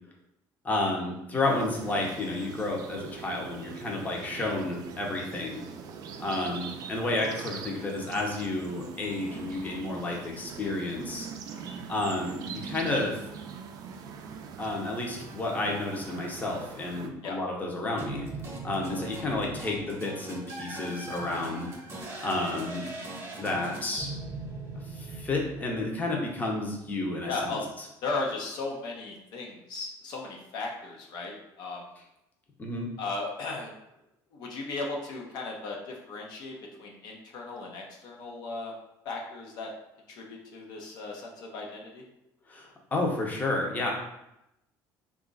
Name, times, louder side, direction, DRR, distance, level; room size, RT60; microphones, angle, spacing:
voice 1, 0.6-5.7 6.2-11.3 11.9-13.3 14.6-18.3 18.6-21.7 22.2-22.9 23.4-24.1 24.9-27.6 32.6-32.9 42.5-43.9, left 2 dB, 20° left, -1 dB, 0.7 m, -31 dB
sound 1, 1.4-17.1, right 6 dB, 55° right, 0.4 m, -42 dB
sound 2, 18.0-26.2, right 2 dB, 30° right, 0.9 m, -40 dB
voice 2, 27.3-27.6 28.0-31.8 33.0-33.7 34.3-38.7 39.0-39.7 40.1-42.0, left 3 dB, 65° left, -1 dB, 0.7 m, -36 dB
2.9 x 2.4 x 3.8 m, 0.87 s
cardioid pair, 115°, 8 cm